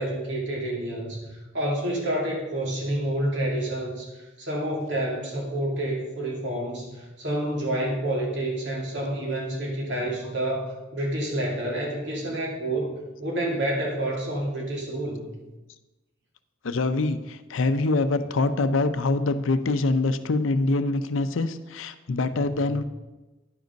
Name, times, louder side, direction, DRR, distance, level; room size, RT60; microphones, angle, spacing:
voice 1, 0.0-4.1 4.4-12.9 13.2-15.3 22.5-22.7, right 1 dB, 60° right, -2 dB, 2.5 m, -29 dB
voice 2, 16.6-22.8, left 2 dB, 80° left, 11 dB, 0.6 m, -24 dB
10.0 x 5.2 x 5.2 m, 1.1 s
head